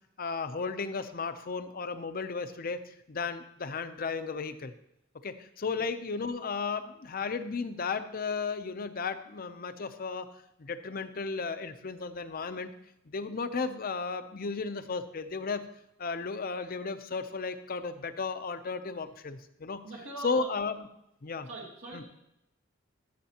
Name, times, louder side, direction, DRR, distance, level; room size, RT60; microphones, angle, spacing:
voice 1, 0.2-4.7 5.2-10.3 10.6-12.7 13.0-15.7 16.0-19.8 20.2-20.9 21.2-21.5 21.9-22.0, left 4 dB, 45° left, 10 dB, 0.6 m, -34 dB
voice 2, 19.8-20.5 21.5-22.0, right 1 dB, 80° right, -4 dB, 2.4 m, -42 dB
14.5 x 7.2 x 2.9 m, 0.81 s
head